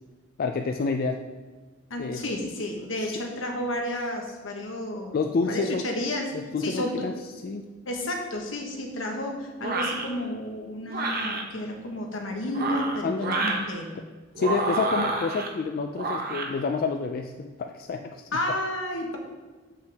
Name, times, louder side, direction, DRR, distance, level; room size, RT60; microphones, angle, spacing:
voice 1, 0.4-1.2 2.0-2.2 3.0-3.2 5.1-5.8 6.3-7.1 7.4-7.7 13.0-13.4 14.4-18.2, left 4 dB, 50° left, 5 dB, 0.3 m, -28 dB
voice 2, 1.9-5.2 5.4-6.3 6.6-7.1 7.9-13.1 13.4-13.9 18.3-19.2, left 1 dB, 75° left, 2 dB, 1.2 m, -31 dB
sound 1, 9.6-10.1 10.9-11.4 12.4-13.7 14.4-15.5 16.0-16.5, right 3 dB, 50° right, 0.8 m, -29 dB
7.9 x 5.4 x 3.4 m, 1.3 s
head